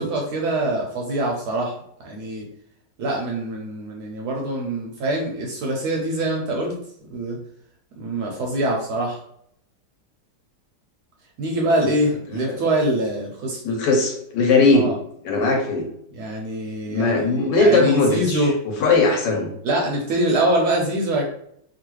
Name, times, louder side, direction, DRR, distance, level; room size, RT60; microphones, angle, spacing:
voice 1, 0.0-1.8 2.0-2.5 3.0-6.7 7.1-7.4 8.0-9.2 11.4-13.6 14.7-14.9 16.1-18.6 18.9-19.0 19.6-21.2, right 1 dB, 70° right, -1 dB, 1.0 m, -24 dB
voice 2, 13.6-14.9 15.2-15.8 16.9-19.5, left 3 dB, 70° left, 1 dB, 1.3 m, -19 dB
3.0 x 2.4 x 3.1 m, 0.72 s
omnidirectional pair, 2.0 m